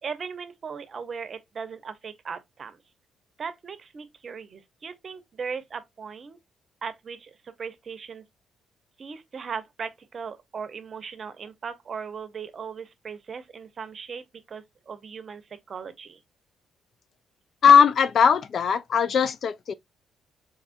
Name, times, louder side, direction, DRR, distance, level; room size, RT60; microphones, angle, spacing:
voice 1, 0.0-2.8 3.4-6.4 6.8-8.2 9.0-15.4 15.7-16.2, right 6 dB, 45° right, 0.7 m, -38 dB
voice 2, 17.6-19.7, left 7 dB, 55° left, 0.3 m, -19 dB
4.2 x 2.4 x 2.4 m
cardioid pair, 90°, 0 cm